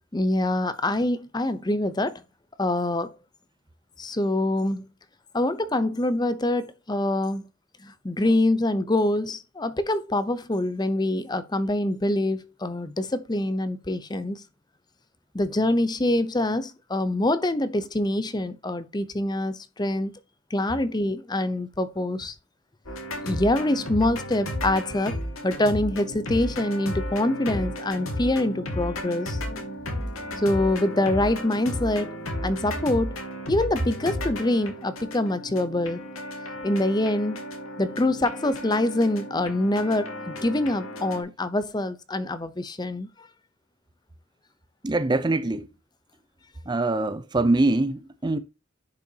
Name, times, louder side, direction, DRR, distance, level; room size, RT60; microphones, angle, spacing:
voice 1, 0.1-2.2 2.6-3.2 4.0-4.9 5.3-7.5 7.8-14.4 15.3-20.1 20.5-22.3 23.2-25.2 25.4-29.4 30.4-32.2 32.4-33.1 33.5-36.0 36.6-37.4 37.8-43.3, left 1 dB, 20° left, 0.6 m, -25 dB
sound 1, 22.9-41.2, left 1 dB, 75° left, 2.5 m, -34 dB
voice 2, 44.8-45.7 46.7-48.4, right 2 dB, 20° right, 0.5 m, -23 dB
10.5 x 5.7 x 2.8 m
head